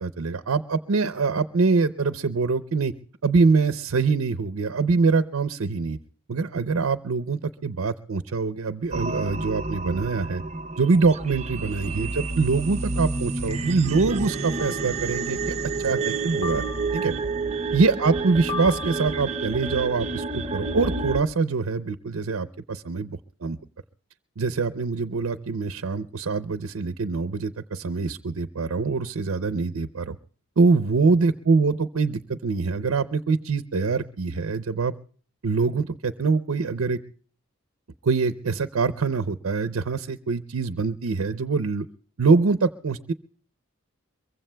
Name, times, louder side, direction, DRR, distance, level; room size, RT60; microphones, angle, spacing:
voice 1, 0.0-2.9 3.2-6.0 6.3-10.4 10.8-16.7 16.9-17.1 17.7-23.6 24.4-30.2 30.6-34.9 35.4-37.0 38.0-41.9 42.2-43.1, right 4 dB, 85° right, 11 dB, 0.6 m, -24 dB
sound 1, 8.9-21.2, right 3 dB, 30° right, 0.6 m, -29 dB
sound 2, 11.4-11.5 13.0-13.3 14.6-15.2 16.4-17.2 18.5-19.4, left 6 dB, 55° left, 2.7 m, -37 dB
23.0 x 23.0 x 2.2 m, 0.43 s
head